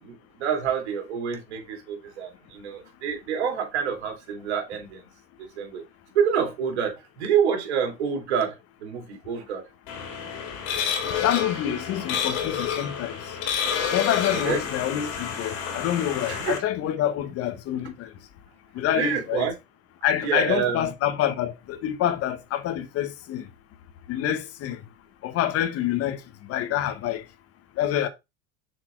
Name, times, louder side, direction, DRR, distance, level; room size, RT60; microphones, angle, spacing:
voice 1, 0.0-5.0 5.4-5.8 6.1-9.6 14.3-14.6 16.2-16.5 18.9-19.5 20.2-20.9, right 7 dB, 85° right, 2.8 m, -27 dB
sound 1, 9.9-16.6, left 7 dB, 70° left, 3.0 m, -29 dB
voice 2, 11.2-13.2 13.9-18.1 18.7-19.5 20.0-23.5 24.1-24.8 25.2-27.2 27.8-28.1, left 11 dB, 45° left, 1.1 m, -27 dB
6.4 x 4.5 x 4.4 m
supercardioid pair, 110°, 33 cm